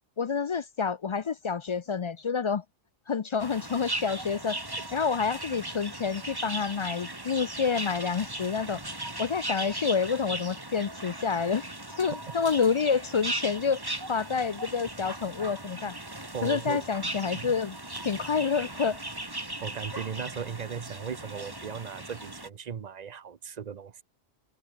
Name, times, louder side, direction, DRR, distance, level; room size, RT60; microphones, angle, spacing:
voice 1, 0.2-2.6 3.1-4.6 4.9-8.8 9.2-11.6 12.0-13.8 14.1-16.0 16.4-17.8 18.0-19.0, left 5 dB, 55° left, 0.3 m, -28 dB
sound 1, 3.4-22.5, right 1 dB, 20° right, 2.3 m, -38 dB
voice 2, 16.3-16.9 17.3-17.5 19.6-24.0, right 7 dB, 45° right, 0.8 m, -37 dB
omnidirectional pair, 1.1 m